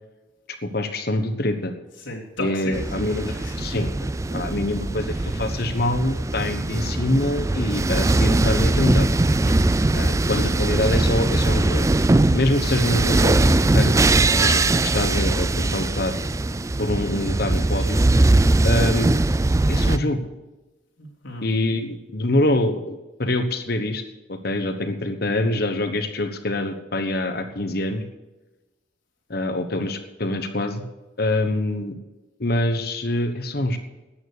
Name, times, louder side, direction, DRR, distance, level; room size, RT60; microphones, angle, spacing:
voice 1, 0.6-1.7 2.4-3.9 4.3-9.1 9.9-11.9 12.3-14.0 14.3-16.1 16.8-18.0 18.6-19.1 19.7-20.2 21.4-24.0 24.3-28.0 29.3-30.8 31.2-32.0 32.4-33.8, left 1 dB, 50° left, 7 dB, 1.2 m, -25 dB
voice 2, 2.0-3.5 5.1-5.3 9.4-9.8 21.0-21.5, left 1 dB, 80° left, -1 dB, 3.6 m, -35 dB
sound 1, 2.7-20.0, right 2 dB, 15° right, 0.3 m, -21 dB
13.0 x 9.4 x 6.7 m, 1.1 s
head